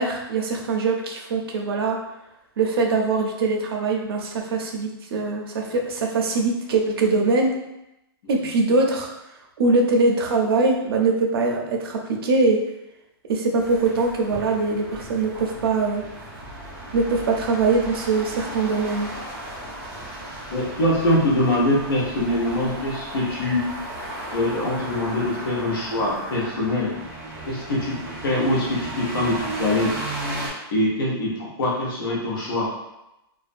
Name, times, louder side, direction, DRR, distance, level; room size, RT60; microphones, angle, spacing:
voice 1, 0.0-2.0 2.6-7.5 8.3-9.1 9.6-12.6 13.3-16.0 16.9-19.1, right 3 dB, 70° right, 1 dB, 0.5 m, -22 dB
sound 1, 13.6-30.5, right 1 dB, 10° right, 0.4 m, -35 dB
voice 2, 20.5-23.6 24.3-26.9 27.5-28.0 28.2-30.0 30.7-32.7, left 1 dB, 60° left, -5 dB, 1.0 m, -23 dB
2.4 x 2.2 x 2.5 m, 0.91 s
hypercardioid pair, 170°, 13 cm